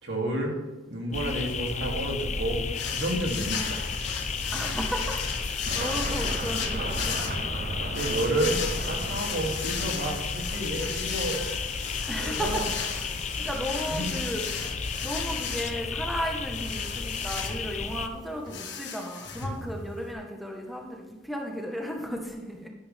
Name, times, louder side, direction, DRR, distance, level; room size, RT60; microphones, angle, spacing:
voice 1, 0.0-0.5 0.9-3.8 7.9-8.6 8.9-11.4 12.2-12.7 13.9-14.1, right 1 dB, 75° right, 0 dB, 2.9 m, -30 dB
sound 1, 1.1-18.1, left 4 dB, 40° left, 0.7 m, -33 dB
sound 2, 2.7-20.1, left 6 dB, 70° left, 1.6 m, -36 dB
voice 2, 4.5-7.5 9.1-9.2 12.1-12.8 13.4-14.5 15.0-22.7, equal, ahead, 0 dB, 1.3 m, -34 dB
sound 3, 5.7-10.6, right 2 dB, 45° right, 0.9 m, -36 dB
11.5 x 11.5 x 3.6 m, 1.2 s
head